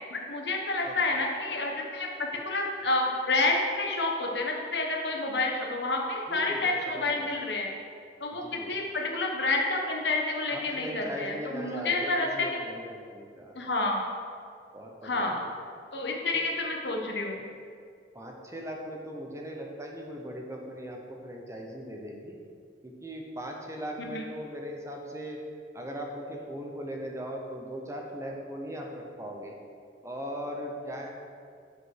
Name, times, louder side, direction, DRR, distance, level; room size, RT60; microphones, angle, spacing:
voice 1, 0.1-7.7 8.2-12.6 13.5-14.0 15.0-15.4 15.9-17.4 24.0-24.2, left 2 dB, 70° left, 1 dB, 1.2 m, -29 dB
voice 2, 6.3-7.4 8.3-8.7 10.5-13.5 14.7-15.5 16.3-16.4 18.1-22.4 22.8-25.4 25.7-29.6 30.0-31.1, equal, 15° right, 1 dB, 0.9 m, -39 dB
7.9 x 5.1 x 6.5 m, 2.3 s
head